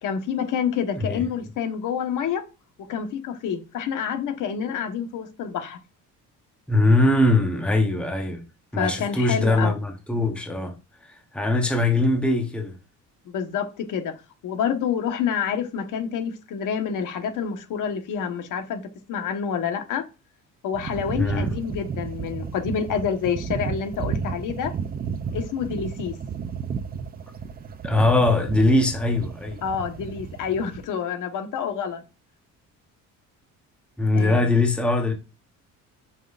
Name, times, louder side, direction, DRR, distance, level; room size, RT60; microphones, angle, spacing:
voice 1, 0.0-2.4 2.9-5.8 8.7-9.8 13.2-14.1 14.4-18.8 19.1-20.0 20.6-24.7 25.3-26.2 29.6-32.0 34.1-34.5, left 7 dB, 70° left, 1.3 m, -28 dB
voice 2, 6.7-8.4 8.7-10.7 11.0-12.8 21.2-21.5 27.8-29.6 34.0-35.1, left 2 dB, 5° left, 1.0 m, -21 dB
sound 1, 20.7-30.9, right 6 dB, 30° right, 0.6 m, -33 dB
9.0 x 5.7 x 2.5 m
cardioid pair, 155°, 32 cm